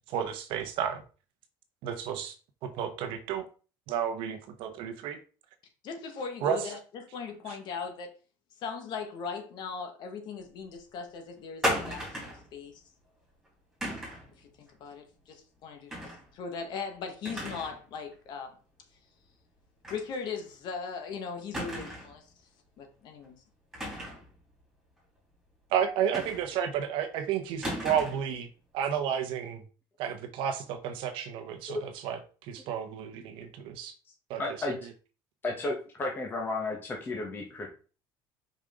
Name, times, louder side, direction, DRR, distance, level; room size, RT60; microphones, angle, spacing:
voice 1, 0.1-1.0 1.8-2.4 2.6-3.5 3.9-5.2 6.4-6.7 7.5-7.6 25.7-28.5 28.7-29.6 30.0-33.9 34.3-34.4, right 8 dB, 65° right, 7 dB, 1.0 m, -32 dB
voice 2, 5.8-8.1 8.6-12.7 14.4-18.5 19.9-22.3 22.8-23.4, left 5 dB, 50° left, 5 dB, 1.6 m, -39 dB
sound 1, 11.6-12.4 13.8-14.3 15.9-16.2 16.6-16.7 17.2-17.8 18.1-18.2 19.8-20.0 20.4-20.5 21.5-22.2 23.7-24.3 26.1-26.7 27.6-28.3, equal, 5° right, 3.1 m, -34 dB
voice 3, 34.4-34.8 35.4-37.7, left 2 dB, 20° left, 0 dB, 1.2 m, -33 dB
5.3 x 4.9 x 3.8 m, 0.36 s
cardioid pair, 155°, 9 cm